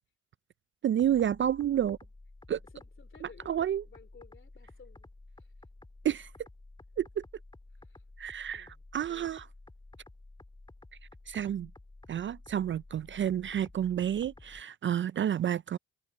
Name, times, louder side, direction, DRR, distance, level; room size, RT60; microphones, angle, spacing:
voice 1, 0.8-2.0 2.5-2.6 3.5-3.8 6.0-6.3 7.0-7.2 8.2-8.7 8.9-9.4 11.3-11.7 12.1-15.8, right 10 dB, 40° right, 0.4 m, -30 dB
sound 1, 1.0-14.6, left 2 dB, 15° left, 3.6 m, -53 dB
voice 2, 2.7-5.1 5.4-5.5 7.8-8.0 8.5-9.4, left 6 dB, 40° left, 3.2 m, -57 dB
cardioid pair, 90°, 30 cm